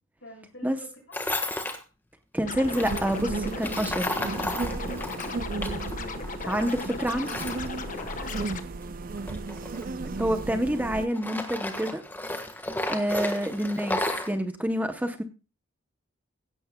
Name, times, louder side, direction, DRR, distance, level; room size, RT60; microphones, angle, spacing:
voice 1, 0.2-1.2 4.8-5.2 6.3-6.8 7.7-8.5, left 1 dB, 60° left, 3 dB, 6.1 m, -46 dB
Tools, 1.1-1.8 2.6-5.9 6.2-8.5 9.1-10.8 11.1-14.3, left 1 dB, 10° left, 1.4 m, -33 dB
voice 2, 2.3-4.2 6.4-7.3 10.2-12.0 12.9-14.0 14.3-15.2, equal, 10° right, 7 dB, 0.7 m, -27 dB
Scratching (performance technique), 2.4-8.6, left 3 dB, 40° left, 1.1 m, -37 dB
sound 1, 2.6-11.1, right 3 dB, 45° right, 0.5 m, -34 dB
16.0 x 11.5 x 2.2 m, 0.31 s
head